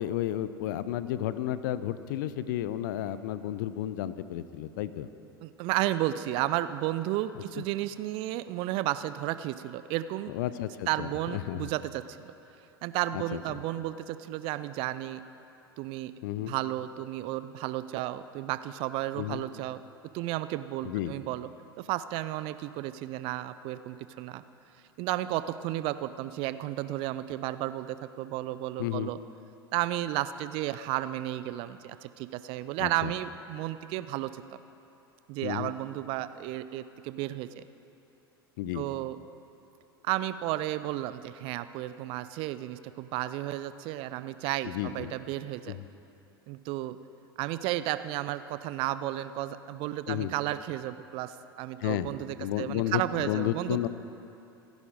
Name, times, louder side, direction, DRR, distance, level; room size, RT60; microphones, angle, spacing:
voice 1, 0.0-5.1 7.3-7.6 10.3-11.7 13.1-13.4 16.2-16.5 19.2-19.4 20.8-21.1 28.8-29.1 32.8-33.1 35.4-35.7 38.6-38.8 44.6-45.1 45.7-45.8 50.1-50.3 51.8-52.1 52.4-53.9, left 12 dB, 55° left, 14 dB, 0.7 m, -32 dB
voice 2, 5.4-10.3 10.9-12.3 12.8-15.2 15.8-16.1 16.5-19.8 20.1-21.5 21.8-24.4 25.0-29.2 29.7-34.4 35.3-37.6 38.7-39.2 40.0-45.8 46.5-47.0 47.4-53.9, right 14 dB, 45° right, 13 dB, 0.6 m, -33 dB
26.0 x 10.5 x 4.9 m, 2.8 s
figure-of-eight pair, 80°, 13 cm